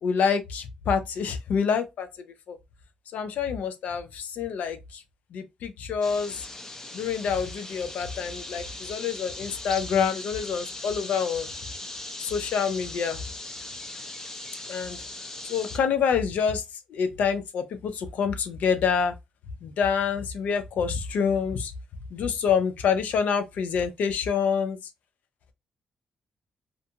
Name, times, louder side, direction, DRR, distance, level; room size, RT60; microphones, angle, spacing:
voice 1, 0.0-2.1 2.5-2.6 3.1-5.0 5.3-6.5 6.9-11.5 12.2-13.2 14.7-15.0 15.5-16.6 16.9-19.1 19.6-21.7 22.1-24.8, left 6 dB, 70° left, 0.5 m, -27 dB
sound 1, 6.0-15.8, left 2 dB, 20° left, 0.5 m, -39 dB
2.5 x 2.3 x 2.7 m
cardioid pair, 75°, 3 cm